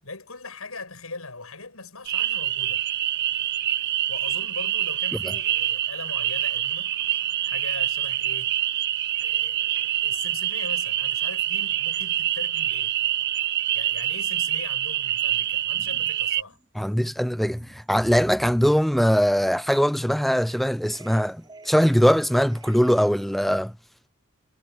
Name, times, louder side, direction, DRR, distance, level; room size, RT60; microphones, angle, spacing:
voice 1, 0.0-2.9 4.1-6.9 7.4-8.5 9.2-13.0 13.7-16.6, left 3 dB, 80° left, 8.0 m, -40 dB
sound 1, 2.1-16.4, right 12 dB, 50° right, 0.6 m, -26 dB
sound 2, 15.7-16.2 16.5-23.4, right 1 dB, 20° right, 3.5 m, -49 dB
voice 2, 16.7-23.7, equal, ahead, 0.5 m, -21 dB
head